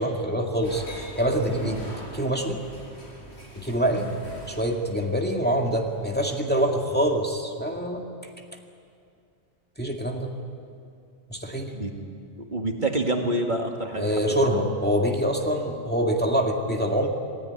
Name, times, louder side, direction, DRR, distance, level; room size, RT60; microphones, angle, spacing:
voice 1, 0.0-1.8 2.1-2.6 3.6-4.1 4.5-8.0 9.8-10.3 11.3-11.7 14.0-17.1, equal, 10° left, 1 dB, 2.0 m, -25 dB
sound 1, 0.6-7.4, equal, 75° left, 6.2 m, -43 dB
voice 2, 12.5-14.2 14.5-14.7, right 1 dB, 45° right, 2 dB, 2.2 m, -28 dB
27.5 x 18.5 x 9.8 m, 2.4 s
omnidirectional pair, 1.1 m